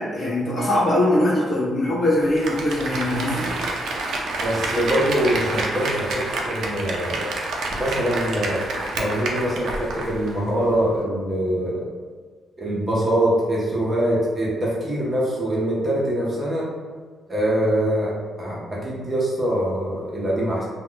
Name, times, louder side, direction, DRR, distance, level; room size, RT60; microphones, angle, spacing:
voice 1, 0.0-3.5, left 1 dB, 35° left, -6 dB, 0.8 m, -21 dB
Applause, 2.2-10.4 10.7-10.8, right 2 dB, 75° right, 0.4 m, -28 dB
voice 2, 4.4-7.2 7.8-8.6 8.9-11.8 12.6-16.6 17.3-18.1 18.4-20.6, right 1 dB, 20° right, -5 dB, 0.6 m, -23 dB
2.1 x 2.1 x 3.7 m, 1.5 s
cardioid pair, 160°, 0 cm